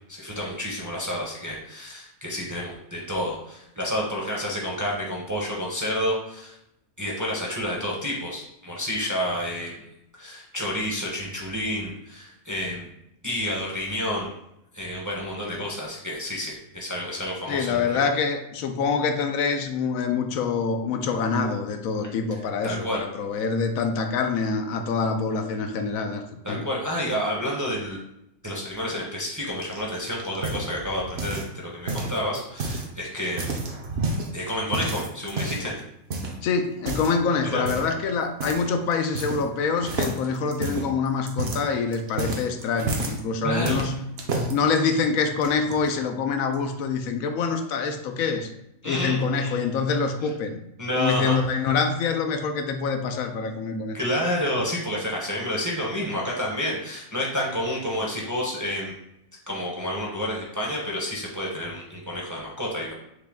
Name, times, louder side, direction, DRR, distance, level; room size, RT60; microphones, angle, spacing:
voice 1, 0.1-6.5 7.0-9.7 10.2-12.9 13.2-14.3 14.7-17.9 22.6-23.0 26.4-28.0 28.4-33.6 34.3-35.7 37.5-37.6 43.4-43.8 48.8-49.2 50.8-51.3 53.9-58.9 59.5-62.9, equal, 20° right, -3 dB, 0.6 m, -29 dB
voice 2, 17.5-26.6 36.4-44.1 44.5-48.5 48.8-50.6 50.9-54.0, left 5 dB, 90° left, 6 dB, 1.0 m, -25 dB
sound 1, 29.6-31.6 31.9-32.9 33.2-34.3 34.7-35.7 36.1-36.4 36.8-37.2 37.7-38.0 38.4-38.7 38.9-39.6 39.8-43.2 43.7-44.5 45.2-45.7, right 2 dB, 55° right, 0.9 m, -30 dB
6.5 x 2.2 x 3.6 m, 0.82 s
omnidirectional pair, 1.4 m